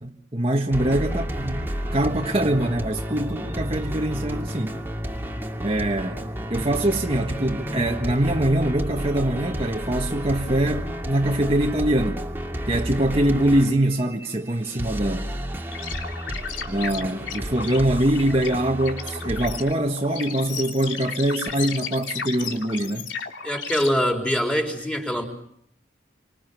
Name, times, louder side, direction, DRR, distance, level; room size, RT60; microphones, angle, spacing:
voice 1, 0.0-4.8 5.6-6.2 6.5-12.2 12.7-15.3 16.7-23.1, right 1 dB, 30° right, 1.6 m, -23 dB
sound 1, 0.7-19.7, equal, 10° right, 2.3 m, -31 dB
sound 2, 15.7-23.9, left 6 dB, 80° left, 3.3 m, -34 dB
voice 2, 23.4-25.2, equal, 5° left, 4.2 m, -23 dB
30.0 x 26.0 x 6.9 m
head